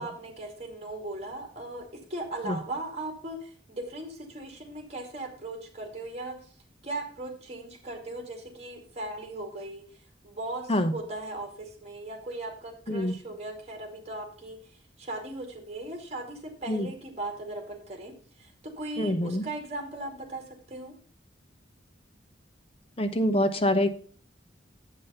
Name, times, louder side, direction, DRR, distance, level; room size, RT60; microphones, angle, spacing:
voice 1, 0.0-6.4 6.8-9.8 10.2-20.4 20.7-20.9, right 2 dB, 35° right, 3 dB, 2.2 m, -38 dB
voice 2, 19.0-19.4 23.0-23.9, left 1 dB, 30° left, 8 dB, 0.8 m, -25 dB
8.4 x 5.4 x 5.5 m, 0.43 s
head